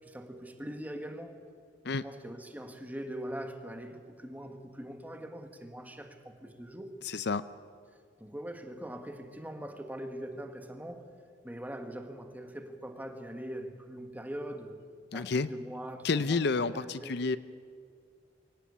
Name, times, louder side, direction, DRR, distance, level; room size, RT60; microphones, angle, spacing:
voice 1, 0.0-1.4 1.8-6.9 8.2-11.1 11.4-14.8 15.1-17.1, right 1 dB, 10° right, 1.6 m, -42 dB
voice 2, 7.0-7.4 15.1-15.5 16.0-17.4, left 4 dB, 60° left, 0.6 m, -29 dB
23.5 x 17.5 x 8.5 m
head